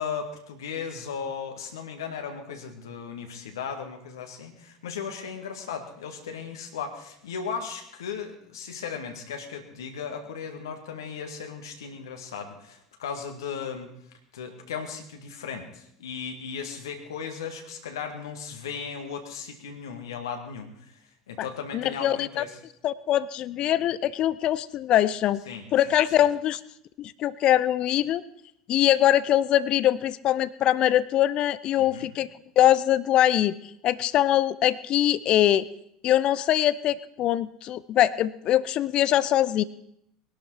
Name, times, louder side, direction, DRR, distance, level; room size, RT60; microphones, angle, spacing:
voice 1, 0.0-13.9 14.3-20.9 21.3-22.6 25.5-26.3 31.8-32.1, left 6 dB, 65° left, 5 dB, 1.9 m, -36 dB
voice 2, 21.7-22.4 22.8-25.4 25.7-26.6 27.0-28.2 28.7-32.3 32.6-33.5 33.8-35.7 36.0-39.6, left 12 dB, 40° left, 19 dB, 0.5 m, -23 dB
21.0 x 12.0 x 4.8 m, 0.73 s
figure-of-eight pair, 70°, 2 cm